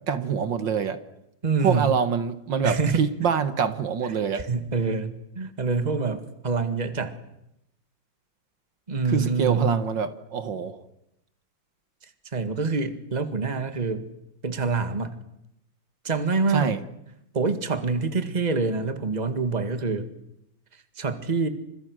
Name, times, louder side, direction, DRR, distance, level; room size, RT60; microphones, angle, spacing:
voice 1, 0.1-1.0 1.6-4.5 9.1-10.8 16.5-16.8, right 7 dB, 70° right, 11 dB, 2.1 m, -25 dB
voice 2, 1.4-1.9 2.6-3.0 4.3-7.2 8.9-9.8 12.3-14.1 14.4-15.2 16.0-16.8 17.3-20.1 21.0-21.5, right 4 dB, 20° right, 9 dB, 1.9 m, -26 dB
30.0 x 27.0 x 6.4 m, 0.83 s
omnidirectional pair, 2.1 m